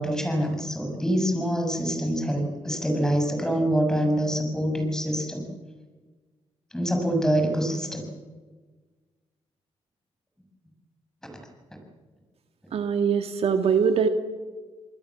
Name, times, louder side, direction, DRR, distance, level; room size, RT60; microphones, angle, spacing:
voice 1, 0.0-5.4 6.7-8.1, equal, 5° left, 3 dB, 7.1 m, -25 dB
voice 2, 12.7-14.1, right 6 dB, 65° right, 7 dB, 1.9 m, -22 dB
27.5 x 20.5 x 7.4 m, 1.4 s
cardioid pair, 85°, 11 cm